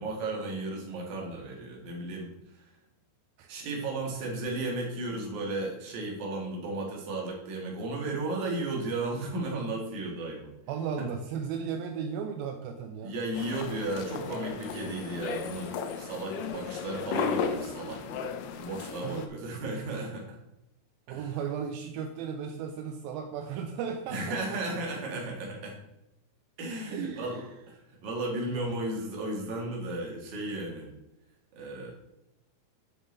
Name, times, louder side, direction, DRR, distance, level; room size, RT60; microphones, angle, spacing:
voice 1, 0.0-2.6 3.5-10.5 11.0-11.1 13.0-18.3 18.6-20.4 21.1-21.3 24.1-25.8 26.6-30.9 31.6-31.9, right 2 dB, 50° right, -1 dB, 3.0 m, -34 dB
voice 2, 10.7-13.1 19.0-19.3 21.1-24.8 26.9-27.5 28.3-28.8, right 7 dB, 80° right, 4 dB, 2.2 m, -36 dB
sound 1, 13.4-19.3, left 6 dB, 80° left, 2.7 m, -35 dB
9.7 x 6.4 x 3.9 m, 0.90 s
omnidirectional pair, 4.8 m